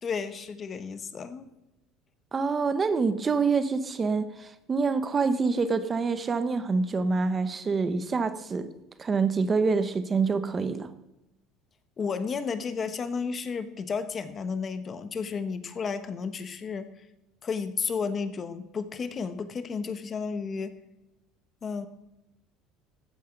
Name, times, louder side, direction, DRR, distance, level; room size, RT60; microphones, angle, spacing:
voice 1, 0.0-1.5 12.0-16.9 17.4-20.7 21.6-21.9, left 5 dB, 25° left, 11 dB, 1.1 m, -32 dB
voice 2, 2.3-8.7 9.0-10.9, right 4 dB, 20° right, 12 dB, 0.8 m, -26 dB
14.5 x 9.0 x 5.9 m, 0.95 s
cardioid pair, 150°, 0 cm